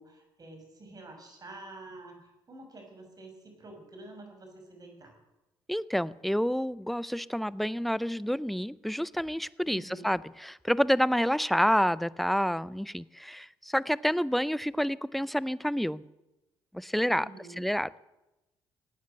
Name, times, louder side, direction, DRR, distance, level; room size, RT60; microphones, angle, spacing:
voice 1, 0.0-5.2 9.6-10.1 17.1-17.6, right 2 dB, 40° right, 4 dB, 5.9 m, -48 dB
voice 2, 5.7-16.0 16.7-17.3 17.6-17.9, equal, ahead, 19 dB, 0.6 m, -28 dB
18.0 x 9.5 x 8.0 m, 0.99 s
supercardioid pair, 70°, 10 cm